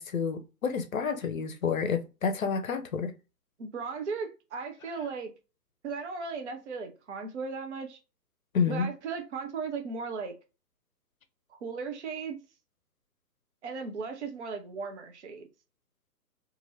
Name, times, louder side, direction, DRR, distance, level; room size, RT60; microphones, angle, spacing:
voice 1, 0.0-3.1 8.5-8.9, left 6 dB, 55° left, 0.6 m, -29 dB
voice 2, 3.6-5.3 5.8-8.0 8.7-10.3 11.6-12.4 13.6-15.5, right 5 dB, 45° right, 0.6 m, -36 dB
2.6 x 2.6 x 2.9 m
figure-of-eight pair, 130°, 50 cm